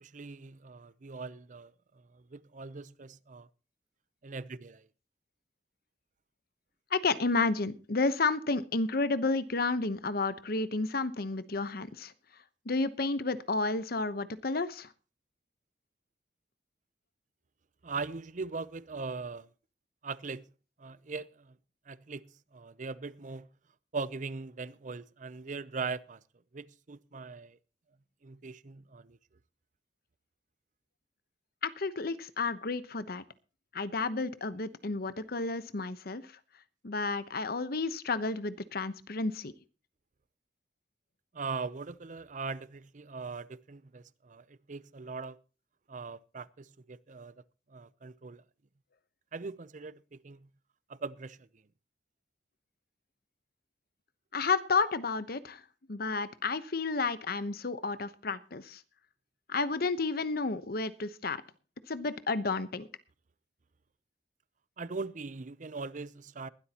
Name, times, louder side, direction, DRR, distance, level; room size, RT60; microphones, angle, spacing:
voice 1, 0.0-1.7 2.1-3.5 4.2-4.9 17.8-19.5 20.0-20.4 20.8-21.5 21.9-23.5 23.9-26.2 26.5-27.6 28.2-29.2 41.3-45.4 45.9-47.3 47.7-48.4 49.3-50.5 50.9-51.5 64.8-66.5, right 4 dB, 45° right, 0.6 m, -40 dB
voice 2, 6.9-12.1 12.6-14.9 31.6-33.2 33.7-36.3 36.8-39.5 54.3-55.6 55.9-58.8 59.5-61.4 61.9-62.9, left 3 dB, 60° left, 1.0 m, -31 dB
20.5 x 12.5 x 2.9 m
head